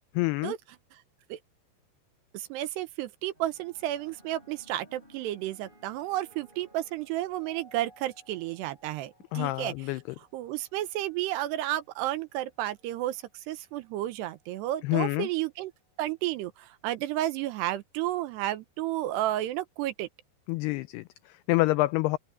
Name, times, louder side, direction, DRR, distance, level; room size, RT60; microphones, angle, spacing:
voice 1, 0.2-0.5 9.3-10.0 14.8-15.3 20.5-22.2, left 20 dB, 90° left, 2.3 m, -27 dB
voice 2, 2.3-9.7 10.3-15.7 16.0-20.1, right 14 dB, 80° right, 2.9 m, -32 dB
sound 1, 3.3-11.9 12.8-13.2, right 1 dB, 10° right, 7.6 m, -59 dB
open air
omnidirectional pair, 5.1 m